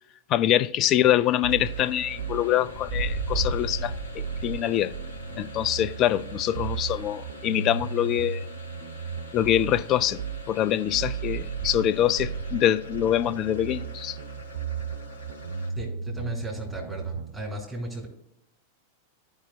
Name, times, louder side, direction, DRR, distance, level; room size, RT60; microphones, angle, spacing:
voice 1, 0.3-4.9 5.4-8.4 9.3-10.2 10.5-14.2, left 12 dB, 35° left, 0.4 m, -24 dB
sound 1, 1.2-1.5 2.6-7.1, right 1 dB, 40° right, 3.3 m, -36 dB
sound 2, 1.4-17.4, right 7 dB, 55° right, 0.6 m, -35 dB
sound 3, 1.6-15.9, left 4 dB, 85° right, 2.2 m, -46 dB
voice 2, 15.8-18.1, right 1 dB, 5° right, 3.4 m, -35 dB
15.0 x 5.5 x 2.3 m
figure-of-eight pair, 90°, 0 cm